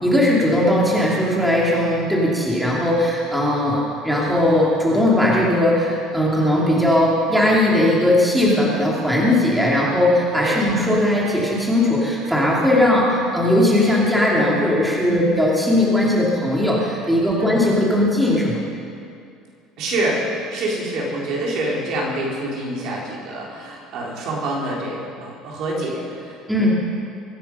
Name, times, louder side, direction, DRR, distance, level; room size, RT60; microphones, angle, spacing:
voice 1, 0.0-18.6 26.5-26.7, left 1 dB, ahead, -5 dB, 2.7 m, -18 dB
voice 2, 19.8-20.2 20.5-26.7, right 1 dB, 55° right, -4 dB, 4.2 m, -26 dB
23.0 x 10.5 x 5.6 m, 2.4 s
cardioid pair, 150°, 0 cm